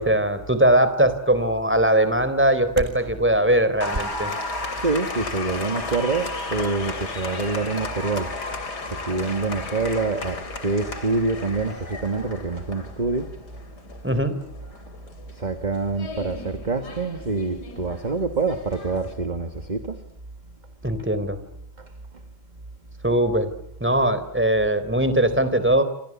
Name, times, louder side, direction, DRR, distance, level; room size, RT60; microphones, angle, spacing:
voice 1, 0.0-4.3 14.0-14.3 20.8-21.4 23.0-23.5 23.8-25.8, right 1 dB, 5° right, 3.7 m, -20 dB
Applause, 3.8-19.1, left 3 dB, 60° left, 3.8 m, -34 dB
voice 2, 4.8-8.4 8.8-13.3 14.6-14.8 15.3-20.0 21.8-21.9, right 3 dB, 25° right, 1.8 m, -26 dB
28.0 x 27.5 x 7.3 m
omnidirectional pair, 1.9 m